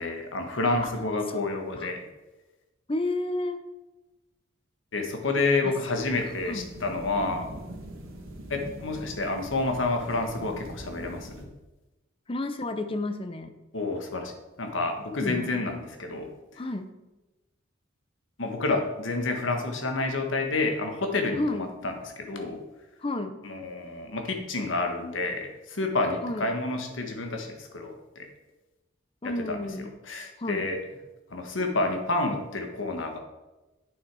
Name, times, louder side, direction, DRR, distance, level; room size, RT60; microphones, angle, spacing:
voice 1, 0.0-2.0 4.9-7.5 8.5-11.5 13.7-14.3 14.6-16.6 18.4-22.6 23.4-28.3 29.2-29.6 30.1-30.8 31.3-33.2, left 3 dB, 70° left, 4 dB, 1.3 m, -29 dB
voice 2, 2.9-3.6 5.6-5.7 6.2-6.7 12.3-13.5 15.2-15.6 16.6-16.9 21.4-21.7 23.0-23.4 26.2-26.5 29.2-30.0 30.4-30.7, left 2 dB, 25° left, 9 dB, 0.7 m, -31 dB
sound 1, 6.0-11.4, right 1 dB, 85° right, 1.8 m, -43 dB
8.8 x 6.9 x 4.7 m, 1.1 s
head